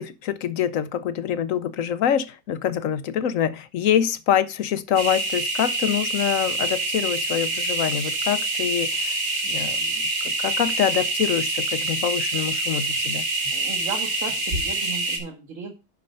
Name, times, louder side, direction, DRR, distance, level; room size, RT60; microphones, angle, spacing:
voice 1, 0.0-9.2 9.4-9.9 10.4-13.2, left 9 dB, 65° left, 0.9 m, -25 dB
sound 1, 4.9-15.2, right 2 dB, 75° right, 3.2 m, -26 dB
voice 2, 13.5-15.7, right 5 dB, 50° right, 1.6 m, -35 dB
10.5 x 4.4 x 5.3 m
omnidirectional pair, 1.8 m